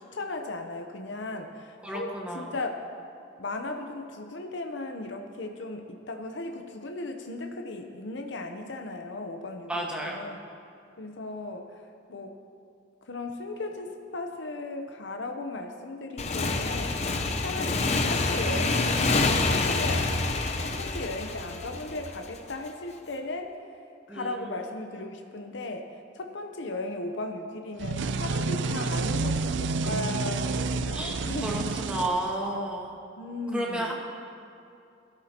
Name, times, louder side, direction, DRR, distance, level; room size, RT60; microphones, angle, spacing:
voice 1, 0.0-2.1 2.3-2.7 3.4-10.4 11.0-11.7 12.1-12.3 13.1-20.1 20.6-23.5 24.1-25.9 26.1-31.7 33.2-33.9, left 2 dB, 85° left, 4 dB, 0.8 m, -36 dB
voice 2, 1.8-2.5 9.7-10.2 17.5-17.8 24.1-24.6 25.0-25.2 30.9-32.9 33.5-33.9, right 1 dB, 5° right, -2 dB, 1.5 m, -33 dB
Motorcycle / Engine, 16.2-22.5, left 3 dB, 35° left, 0.7 m, -27 dB
sound 1, 27.8-32.7, right 4 dB, 80° right, 0.4 m, -29 dB
17.0 x 13.0 x 2.9 m, 2.6 s
head